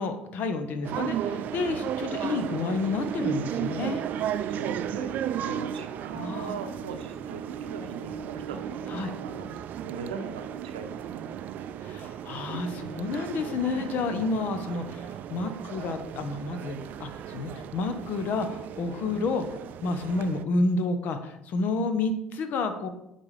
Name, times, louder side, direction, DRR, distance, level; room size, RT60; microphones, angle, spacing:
voice 1, 0.0-4.1 6.1-6.6 8.9-9.1 11.8-22.9, left 3 dB, 60° left, 8 dB, 0.8 m, -30 dB
sound 1, 0.8-20.4, right 9 dB, 55° right, 0.3 m, -35 dB
voice 2, 4.4-11.2 14.4-14.5, right 5 dB, 85° right, 7 dB, 0.7 m, -40 dB
8.5 x 4.2 x 3.3 m, 0.85 s
hypercardioid pair, 65°, 3 cm